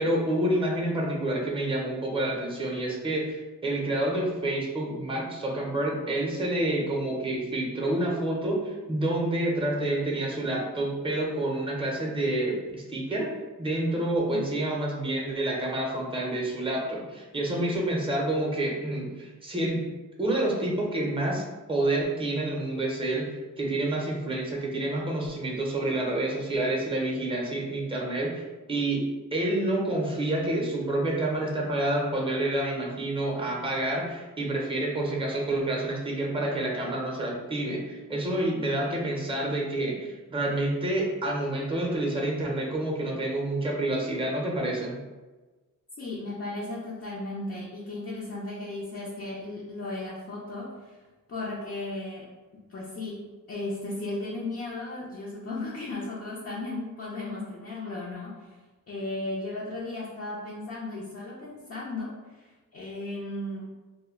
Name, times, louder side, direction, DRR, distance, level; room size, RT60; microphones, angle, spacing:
voice 1, 0.0-13.3 13.6-19.8 20.2-23.2 23.6-29.0 29.3-45.0, right 1 dB, 15° right, -1 dB, 0.6 m, -28 dB
voice 2, 46.0-51.0 51.3-52.3 52.7-53.2 53.5-58.6 58.9-63.7, left 2 dB, 45° left, -6 dB, 0.5 m, -35 dB
2.2 x 2.1 x 3.6 m, 1.2 s
cardioid pair, 85°, 34 cm